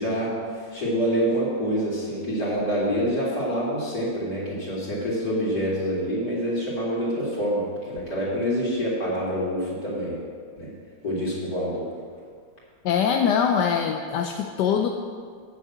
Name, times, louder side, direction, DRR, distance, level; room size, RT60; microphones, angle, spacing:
voice 1, 0.0-10.2 10.6-10.7 11.0-11.9, equal, 45° left, -8 dB, 2.8 m, -26 dB
voice 2, 12.8-14.9, left 7 dB, 70° left, 3 dB, 1.0 m, -23 dB
8.0 x 6.9 x 8.5 m, 2.1 s
omnidirectional pair, 2.3 m